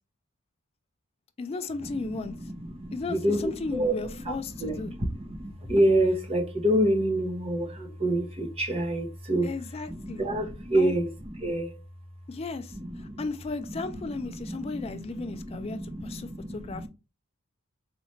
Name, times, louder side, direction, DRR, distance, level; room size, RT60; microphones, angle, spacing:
voice 1, 1.4-2.3 2.9-4.9 9.4-10.2 10.7-10.9 12.3-16.9, left 3 dB, 25° left, 0.3 m, -35 dB
voice 2, 2.0-3.9 4.6-9.5 9.9-11.7 12.7-13.2 13.8-13.9 14.2-16.9, right 1 dB, 25° right, 0.8 m, -28 dB
4.1 x 2.4 x 3.1 m
head